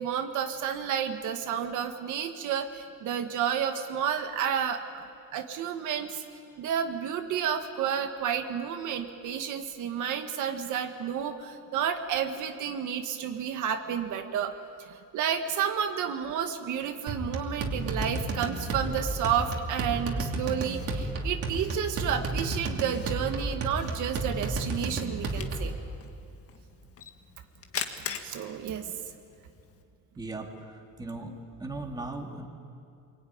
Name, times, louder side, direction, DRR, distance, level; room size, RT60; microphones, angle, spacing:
voice 1, 0.0-6.2 6.6-14.5 14.9-25.8 28.2-29.0 31.2-31.4, right 8 dB, 70° right, 6 dB, 1.7 m, -31 dB
sound 1, 17.1-25.8, right 2 dB, 45° right, 3.0 m, -32 dB
Camera, 17.8-29.8, left 7 dB, 45° left, 1.8 m, -45 dB
voice 2, 30.2-30.5 31.0-31.3 31.6-32.5, right 2 dB, 10° right, 2 dB, 2.2 m, -37 dB
26.5 x 23.5 x 9.5 m, 2.5 s
cardioid pair, 175°, 32 cm